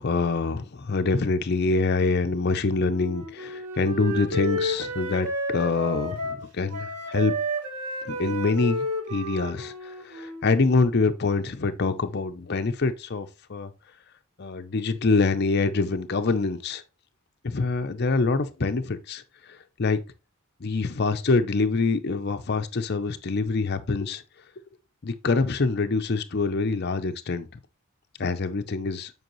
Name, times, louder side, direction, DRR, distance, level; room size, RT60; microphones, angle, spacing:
voice 1, 0.0-7.3 8.1-13.7 14.4-16.8 17.4-19.2 19.8-20.0 20.6-24.2 25.0-27.5 28.2-29.1, left 3 dB, 45° left, 0.6 m, -25 dB
Wind instrument woodwind instrument, 2.9-6.5 6.7-10.6, equal, 90° right, 1.4 m, -31 dB
7.9 x 4.7 x 3.0 m
head